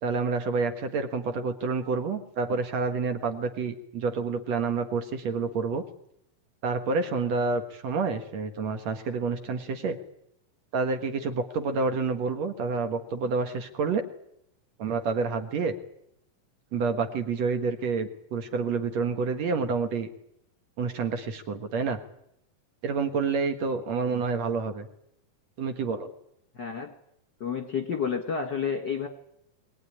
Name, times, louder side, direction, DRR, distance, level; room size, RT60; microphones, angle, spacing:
voice 1, 0.0-5.8 6.6-10.0 10.7-14.0 14.8-15.7 16.7-20.1 20.8-22.0 22.8-24.9 25.6-26.1, right 4 dB, 60° right, 7 dB, 2.3 m, -28 dB
voice 2, 26.6-26.9 27.4-29.1, left 6 dB, 45° left, 5 dB, 1.7 m, -30 dB
21.5 x 18.5 x 9.8 m, 0.78 s
omnidirectional pair, 3.8 m